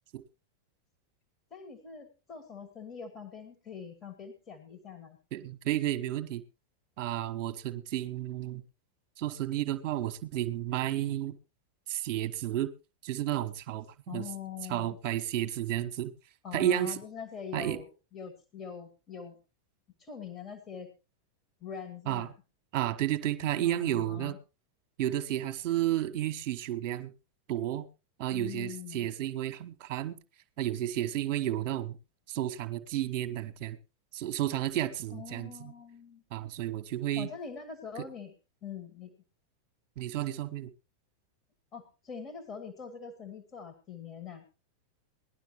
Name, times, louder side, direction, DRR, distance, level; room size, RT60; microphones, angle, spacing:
voice 1, 1.5-5.2 14.1-15.0 16.4-19.4 20.0-20.9 21.6-22.3 23.6-24.4 28.3-29.1 35.1-36.2 37.2-38.3 38.6-39.1 41.7-44.4, left 7 dB, 30° left, 7 dB, 1.9 m, -43 dB
voice 2, 5.3-6.4 7.0-8.6 9.2-11.4 11.9-12.7 13.0-14.2 14.7-16.1 16.5-17.0 17.5-17.8 22.1-22.3 22.7-24.4 25.0-27.1 27.5-27.9 28.2-30.2 30.6-32.0 32.3-33.8 34.1-35.7 36.3-37.3 38.0-38.1 40.0-40.7, right 12 dB, 40° right, 10 dB, 1.2 m, -32 dB
19.0 x 11.5 x 3.1 m, 0.30 s
figure-of-eight pair, 90°, 0 cm